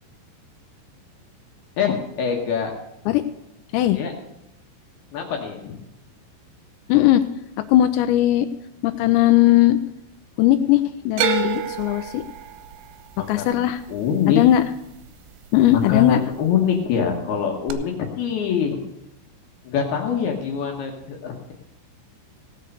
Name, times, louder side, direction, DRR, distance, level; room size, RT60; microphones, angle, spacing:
voice 1, 1.8-2.7 3.9-4.1 5.1-5.8 13.2-13.6 13.9-14.4 15.9-18.8 19.6-21.5, left 7 dB, 70° left, 1 dB, 2.6 m, -24 dB
voice 2, 6.9-7.2 7.7-8.5 8.8-9.8 10.4-12.2 13.3-13.8 14.3-14.6 15.5-16.2, left 13 dB, 85° left, 10 dB, 2.5 m, -18 dB
sound 1, 11.2-15.4 15.7-16.4 17.7-17.8, right 8 dB, 75° right, 2.6 m, -29 dB
18.0 x 6.5 x 6.7 m, 0.86 s
omnidirectional pair, 5.8 m